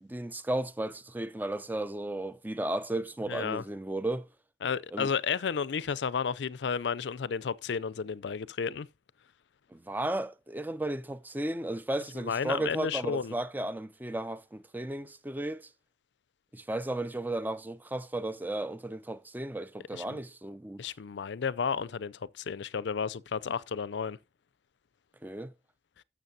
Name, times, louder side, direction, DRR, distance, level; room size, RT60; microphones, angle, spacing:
voice 1, 0.0-4.3 4.9-5.1 9.7-15.7 16.5-20.8 25.2-25.5, right 1 dB, 10° right, 0.5 m, -34 dB
voice 2, 3.3-3.6 4.6-8.9 12.1-13.3 19.9-20.2 20.8-24.2, left 6 dB, 85° left, 0.5 m, -32 dB
12.5 x 7.1 x 2.7 m
head